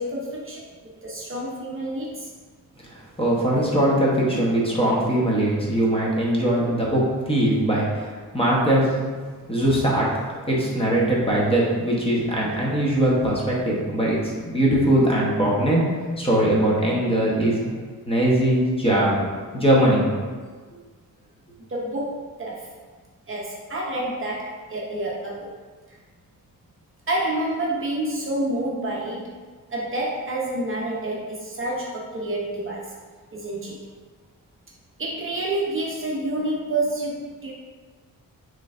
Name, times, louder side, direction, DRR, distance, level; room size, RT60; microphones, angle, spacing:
voice 1, 0.0-2.3 21.6-22.7 23.3-25.5 27.1-29.3 29.7-32.9 33.3-33.8 35.0-37.5, right 1 dB, 35° right, -3 dB, 0.6 m, -28 dB
voice 2, 2.9-9.2 9.5-17.7 18.1-19.2 19.5-20.1, right 1 dB, 15° left, -5 dB, 0.9 m, -21 dB
6.4 x 3.2 x 2.5 m, 1.5 s
wide cardioid pair, 150°, 35 cm